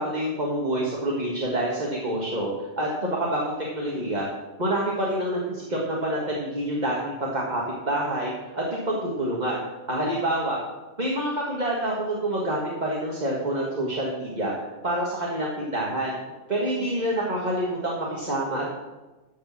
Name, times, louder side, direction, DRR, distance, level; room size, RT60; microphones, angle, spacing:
voice 1, 0.0-2.5 2.8-4.3 4.6-9.6 9.9-10.6 11.0-14.5 14.8-16.1 16.5-18.7, right 1 dB, 30° right, -4 dB, 1.8 m, -27 dB
13.0 x 5.1 x 7.3 m, 1.1 s
omnidirectional pair, 1.4 m